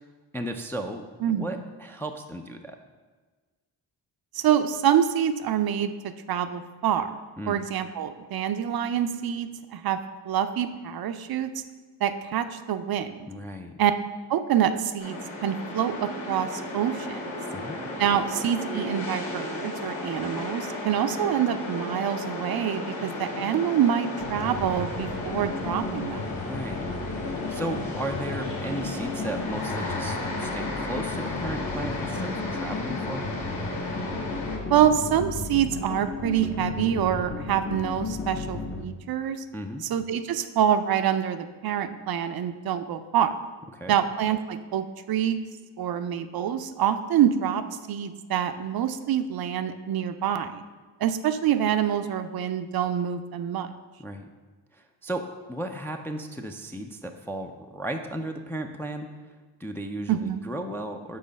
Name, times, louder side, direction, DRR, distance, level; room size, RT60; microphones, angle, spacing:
voice 1, 0.3-2.8 7.4-7.6 13.3-13.7 17.5-17.8 26.3-26.8 27.5-33.3 39.5-39.8 43.7-44.0 54.0-54.3 54.7-55.2 55.5-59.1 59.6-61.2, right 1 dB, 5° left, 4 dB, 0.3 m, -35 dB
voice 2, 4.3-5.9 6.3-7.1 7.5-10.0 10.3-11.5 12.0-13.3 13.8-13.9 14.3-17.2 18.0-26.4 34.7-39.4 39.9-43.3 43.9-45.4 45.8-47.6 47.9-50.6 51.0-53.7 60.1-60.4, right 9 dB, 50° right, 10 dB, 0.5 m, -26 dB
sound 1, 15.0-34.6, left 2 dB, 60° left, 1.9 m, -34 dB
sound 2, 24.2-38.8, left 3 dB, 25° left, 0.8 m, -34 dB
5.5 x 4.0 x 5.1 m, 1.4 s
supercardioid pair, 60°, 47 cm